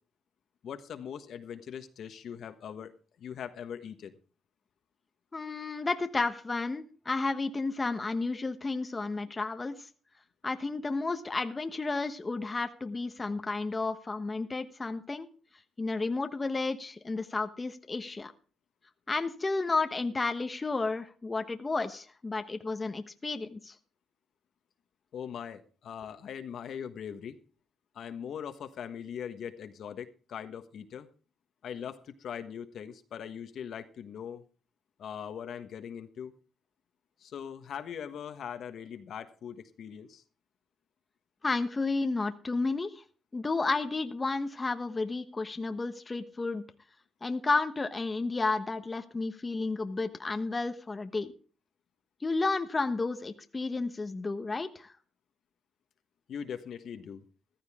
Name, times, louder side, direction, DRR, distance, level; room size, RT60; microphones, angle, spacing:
voice 1, 0.6-4.1 25.1-27.4 27.9-31.1 31.6-34.4 35.0-36.4 37.2-40.2 56.3-57.2, left 8 dB, 65° left, 9 dB, 1.3 m, -41 dB
voice 2, 5.3-9.7 10.4-15.3 15.8-18.3 19.1-23.7 41.4-43.0 43.3-46.6 47.2-51.3 52.2-54.9, left 3 dB, 25° left, 8 dB, 1.1 m, -32 dB
14.5 x 13.5 x 3.6 m, 0.38 s
cardioid pair, 90°, 0 cm